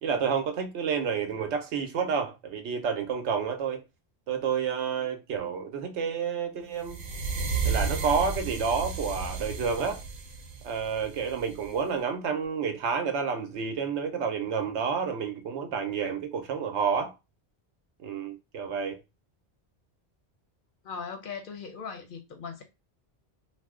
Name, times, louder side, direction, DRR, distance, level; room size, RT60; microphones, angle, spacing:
voice 1, 0.0-3.8 4.3-7.0 7.6-10.0 10.6-17.1 18.0-19.0, right 6 dB, 90° right, 0.9 m, -29 dB
sound 1, 6.8-11.8, right 4 dB, 60° right, 0.7 m, -33 dB
voice 2, 20.8-22.6, left 6 dB, 60° left, 0.6 m, -39 dB
2.6 x 2.0 x 3.5 m
omnidirectional pair, 1.1 m